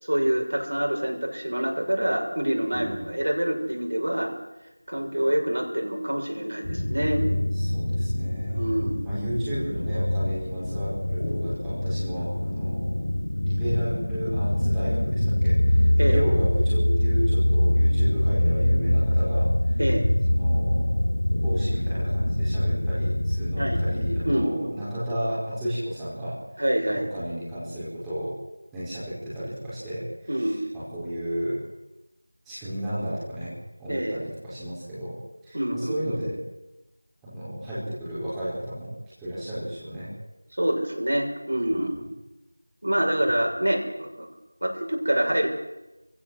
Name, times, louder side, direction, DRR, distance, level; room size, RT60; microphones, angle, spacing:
voice 1, 0.0-4.3 4.9-7.2 8.5-8.9 16.0-16.2 19.8-20.0 23.6-23.8 24.2-24.8 26.6-27.1 30.3-30.6 33.9-34.2 35.5-36.2 40.5-42.1 42.8-44.3 44.6-45.5, right 1 dB, 70° right, 1 dB, 6.4 m, -26 dB
voice 2, 2.7-3.1 7.5-13.0 13.4-19.8 20.3-21.1 21.4-26.4 26.9-28.3 28.7-31.6 32.4-33.5 33.8-35.2 35.4-36.4 37.2-38.9 39.2-40.1 41.6-42.0, equal, 5° right, -14 dB, 4.9 m, -33 dB
sound 1, 6.6-24.5, left 1 dB, 65° left, 1.2 m, -24 dB
25.5 x 16.5 x 7.9 m, 0.99 s
figure-of-eight pair, 175°, 0 cm